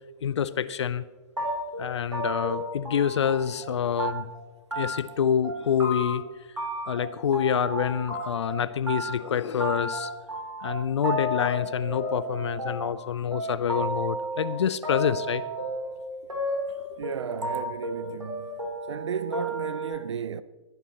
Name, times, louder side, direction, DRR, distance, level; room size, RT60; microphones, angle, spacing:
voice 1, 0.2-1.0 1.8-4.3 4.8-6.2 6.9-10.1 10.6-15.4 16.9-17.0, left 8 dB, 60° left, 0.7 m, -27 dB
sound 1, 1.4-3.7 4.0-4.4 4.7-5.2 5.4-6.3 6.6-8.6 8.9-19.9, right 1 dB, 85° right, 3.3 m, -32 dB
voice 2, 17.0-18.6 18.9-20.4, right 7 dB, 65° right, 0.6 m, -34 dB
22.0 x 10.5 x 3.0 m
figure-of-eight pair, 115°, 16 cm